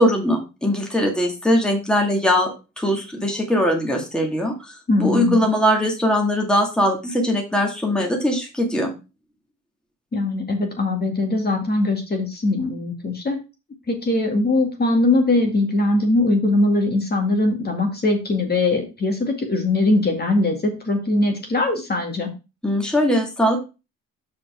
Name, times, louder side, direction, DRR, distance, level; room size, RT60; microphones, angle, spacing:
voice 1, 0.0-4.7 5.0-8.9 22.6-23.6, equal, 5° left, 1 dB, 1.9 m, -20 dB
voice 2, 4.9-5.4 10.1-13.4 13.9-22.3, left 2 dB, 30° left, 3 dB, 2.1 m, -21 dB
5.9 x 5.1 x 4.9 m, 0.29 s
cardioid pair, 90°, 30 cm